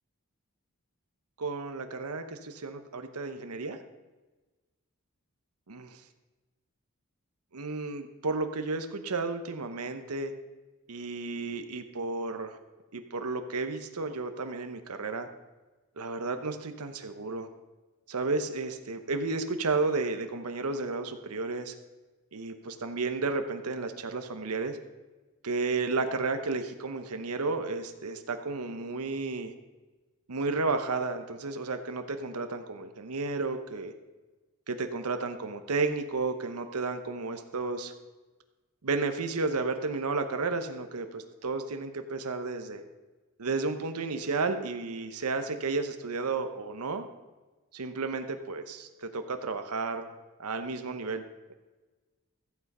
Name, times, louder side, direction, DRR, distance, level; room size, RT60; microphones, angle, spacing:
voice 1, 1.4-3.8 5.7-6.0 7.5-10.3 10.9-12.6 12.9-15.3 16.0-17.5 18.1-21.7 22.3-24.8 25.4-29.5 30.3-33.9 34.7-37.9 38.8-42.8 43.4-47.0 47.7-50.1 50.4-51.2, right 3 dB, 85° right, 8 dB, 0.9 m, -32 dB
14.5 x 8.2 x 5.4 m, 1.2 s
head